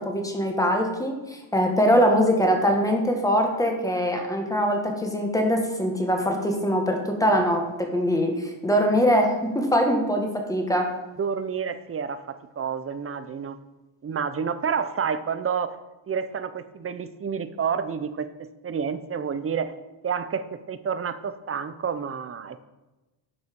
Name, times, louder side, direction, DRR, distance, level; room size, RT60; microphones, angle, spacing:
voice 1, 0.0-11.0, equal, 5° left, 3 dB, 1.4 m, -23 dB
voice 2, 11.2-13.6 14.0-15.8 16.1-19.7 20.0-22.6, right 6 dB, 30° right, 12 dB, 0.5 m, -29 dB
10.5 x 5.5 x 5.2 m, 1.1 s
cardioid pair, 140°, 48 cm